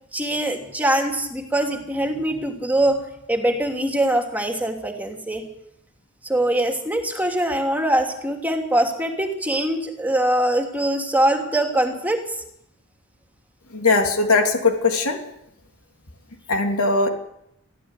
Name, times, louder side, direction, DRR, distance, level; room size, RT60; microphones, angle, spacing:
voice 1, 0.1-3.0 3.3-5.4 6.2-12.2, right 1 dB, 10° right, 3 dB, 2.9 m, -22 dB
voice 2, 13.7-15.2 16.5-17.1, left 3 dB, 80° left, 4 dB, 3.1 m, -20 dB
22.5 x 15.0 x 8.4 m, 0.78 s
head